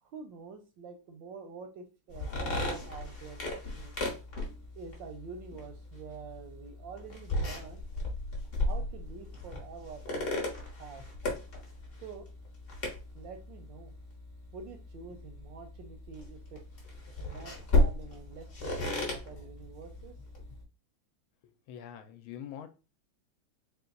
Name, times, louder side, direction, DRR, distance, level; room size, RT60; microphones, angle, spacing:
voice 1, 0.0-4.2 4.8-7.8 8.6-11.0 12.0-12.3 13.1-13.9 14.5-16.6 17.2-20.2, right 5 dB, 75° right, 6 dB, 1.1 m, -47 dB
sound 1, 2.1-20.6, left 2 dB, 35° left, 0.9 m, -35 dB
voice 2, 21.7-22.7, left 9 dB, 80° left, 8 dB, 1.4 m, -44 dB
4.2 x 2.3 x 3.8 m, 0.31 s
omnidirectional pair, 2.4 m